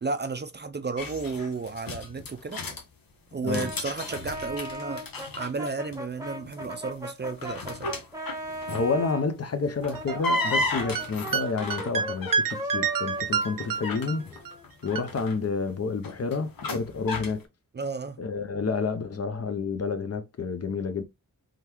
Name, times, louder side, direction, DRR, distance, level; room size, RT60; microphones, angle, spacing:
voice 1, 0.0-2.6 3.3-8.0 17.7-18.2, right 4 dB, 30° right, 0.4 m, -33 dB
sound 1, 1.0-2.8 3.3-5.9 6.2-6.7 7.2-9.0 9.7-12.6 13.2-17.4, left 2 dB, 90° left, 1.1 m, -34 dB
Brass instrument, 3.5-9.3 9.9-14.6, right 1 dB, 10° right, 0.9 m, -38 dB
voice 2, 8.7-14.2 14.8-17.5 18.2-21.0, left 4 dB, 45° left, 0.7 m, -29 dB
sound 2, 9.8-10.6 10.8-14.5 14.8-15.0, right 6 dB, 75° right, 0.7 m, -29 dB
3.8 x 3.4 x 3.0 m
wide cardioid pair, 150°, 33 cm